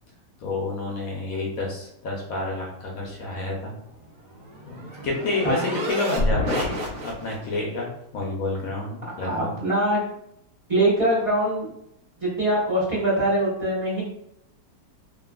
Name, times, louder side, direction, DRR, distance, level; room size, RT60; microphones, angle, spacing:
voice 1, 0.4-3.8 4.6-5.6 5.9-9.5, left 2 dB, 70° left, -1 dB, 0.8 m, -29 dB
sound 1, 3.9-7.6, equal, 70° right, 1.1 m, -29 dB
voice 2, 9.2-10.0 10.7-11.7 12.2-14.0, right 1 dB, 25° right, -9 dB, 0.9 m, -23 dB
2.8 x 2.5 x 2.3 m, 0.78 s
omnidirectional pair, 2.0 m